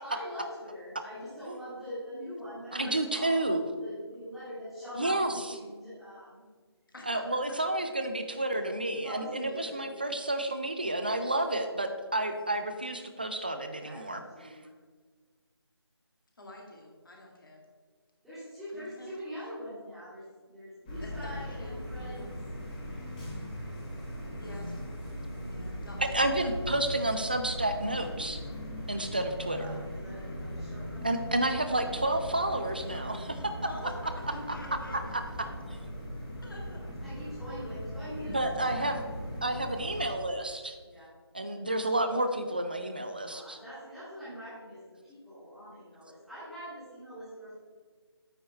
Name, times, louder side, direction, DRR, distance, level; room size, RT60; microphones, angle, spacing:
voice 1, 0.0-3.4 3.8-6.4 8.5-10.1 13.7-14.7 18.2-22.3 24.0-24.2 29.5-31.2 34.3-34.7 37.0-39.0 40.8-41.1 43.2-47.6, equal, ahead, -14 dB, 2.1 m, -43 dB
voice 2, 2.7-3.6 5.0-5.3 7.1-14.5 26.1-28.4 28.9-29.8 31.0-33.3 35.1-35.2 38.3-39.0 39.4-40.8 41.3-43.6, right 1 dB, 20° right, 8 dB, 0.4 m, -30 dB
voice 3, 5.0-5.3 6.9-7.7 8.5-8.6 9.4-9.7 12.3-12.4 16.4-17.6 18.7-19.2 21.0-22.3 24.4-24.9 25.4-26.5 32.6-33.2 33.6-34.0 34.3-35.9 36.4-36.8 37.6-38.3, left 1 dB, 50° left, -1 dB, 2.0 m, -48 dB
sound 1, 20.9-40.1, equal, 15° left, 1.8 m, -39 dB
9.0 x 5.4 x 4.2 m, 1.5 s
figure-of-eight pair, 160°, 14 cm